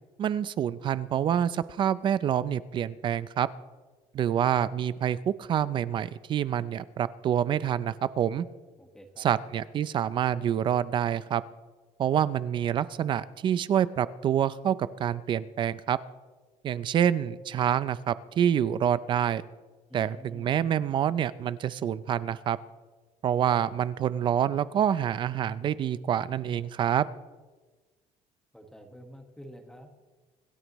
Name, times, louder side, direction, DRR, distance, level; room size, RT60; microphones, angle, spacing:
voice 1, 0.2-3.5 4.1-8.5 9.2-11.4 12.0-16.0 16.6-19.4 19.9-22.6 23.2-27.1, right 9 dB, 35° right, 16 dB, 0.4 m, -27 dB
voice 2, 8.8-9.3 19.9-20.6 28.5-30.0, equal, 5° left, 4 dB, 1.5 m, -48 dB
26.5 x 12.5 x 3.1 m, 1.3 s
cardioid pair, 170°, 14 cm